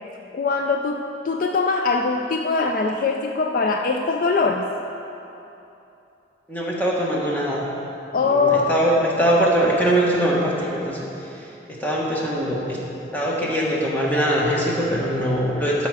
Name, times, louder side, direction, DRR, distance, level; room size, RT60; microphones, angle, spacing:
voice 1, 0.3-4.7 8.1-8.8, left 4 dB, 45° left, 3 dB, 0.4 m, -22 dB
voice 2, 6.5-7.6 8.2-11.1 11.4-11.5 11.8-12.8 13.1-15.9, right 1 dB, 10° left, -4 dB, 1.3 m, -22 dB
12.5 x 5.8 x 4.8 m, 2.9 s
head